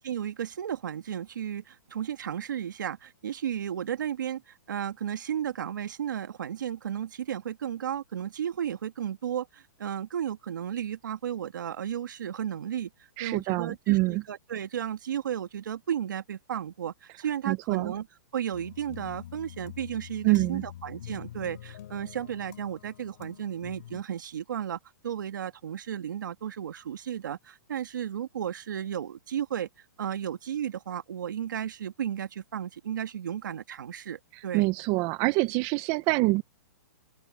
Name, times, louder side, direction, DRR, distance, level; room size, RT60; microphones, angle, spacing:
voice 1, 0.0-12.9 13.2-18.1 18.3-29.7 30.0-34.6, right 9 dB, 80° right, 1.7 m, -34 dB
voice 2, 13.2-14.2 17.5-17.9 20.2-20.6 34.5-36.4, right 23 dB, 25° right, 0.5 m, -25 dB
sound 1, 18.5-24.0, left 11 dB, 60° left, 5.2 m, -45 dB
open air
hypercardioid pair, 160°, 10 cm